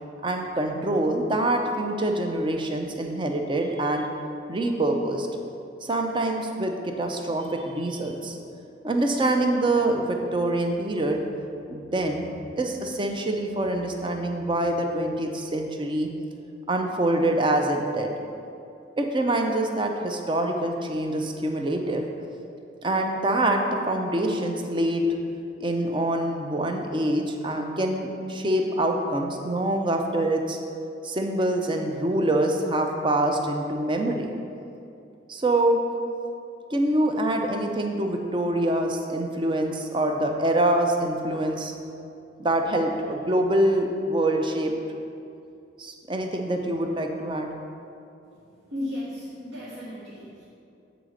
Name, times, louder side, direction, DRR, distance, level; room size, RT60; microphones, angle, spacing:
voice 1, 0.2-4.1 4.5-5.3 5.8-8.4 8.8-11.2 11.7-12.3 12.6-16.1 16.7-18.1 19.0-22.0 22.8-25.1 25.6-30.6 31.0-34.3 35.3-35.8 36.7-41.7 42.4-44.7 45.8-47.5, right 1 dB, 25° right, 3 dB, 0.5 m, -25 dB
voice 2, 48.7-50.4, left 1 dB, 70° right, -9 dB, 1.3 m, -35 dB
7.8 x 3.9 x 4.9 m, 2.6 s
head